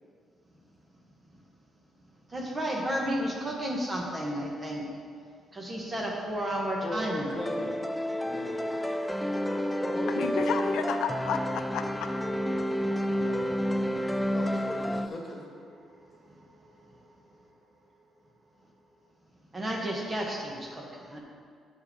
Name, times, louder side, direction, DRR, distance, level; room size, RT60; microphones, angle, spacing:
voice 1, 2.3-4.9 5.5-7.4 16.3-16.4 19.5-21.2, equal, 25° right, -1 dB, 1.3 m, -32 dB
sound 1, 4.9-5.0 7.7-19.1, right 1 dB, 45° right, 1.0 m, -49 dB
voice 2, 6.8-7.8 8.2-8.6 9.8-10.7 13.9-15.4, left 1 dB, 30° left, -1 dB, 1.6 m, -38 dB
sound 2, 7.3-15.1, equal, 5° left, 0.3 m, -30 dB
voice 3, 10.2-12.1 13.2-13.4, left 7 dB, 85° left, 6 dB, 0.5 m, -32 dB
7.2 x 4.8 x 6.0 m, 2.1 s
cardioid pair, 90°, 0 cm